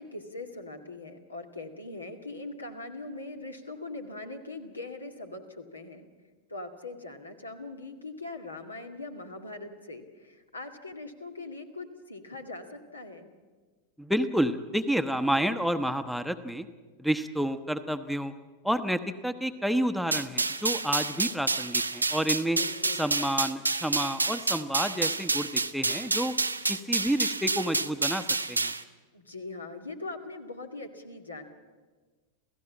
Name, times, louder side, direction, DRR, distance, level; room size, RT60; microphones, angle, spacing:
voice 1, 0.0-6.1 6.5-13.3 22.6-23.1 29.1-31.4, left 2 dB, 80° left, 5 dB, 2.2 m, -41 dB
voice 2, 14.0-16.7 17.0-18.3 18.6-22.6 23.0-26.3 26.7-28.7, equal, ahead, 9 dB, 1.0 m, -29 dB
sound 1, 20.1-28.8, right 3 dB, 80° right, 0.8 m, -29 dB
28.0 x 16.0 x 7.4 m, 1.4 s
figure-of-eight pair, 90°, 0 cm